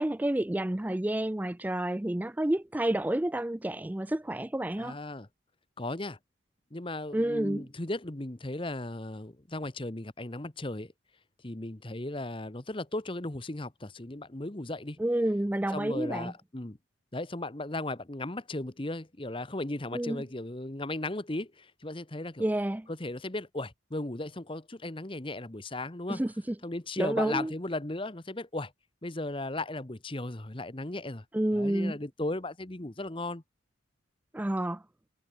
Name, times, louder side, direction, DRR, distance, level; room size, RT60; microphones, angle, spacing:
voice 1, 0.0-4.9 7.1-7.6 15.0-16.3 19.9-20.2 22.4-22.9 26.1-26.3 27.0-27.5 31.3-31.9 34.3-34.8, right 1 dB, 10° right, 0.3 m, -29 dB
voice 2, 4.8-5.3 5.8-6.2 6.7-10.9 11.4-15.0 15.7-16.8 17.1-22.5 22.9-26.2 26.6-28.7 29.0-33.4, left 2 dB, 25° left, 1.1 m, -36 dB
head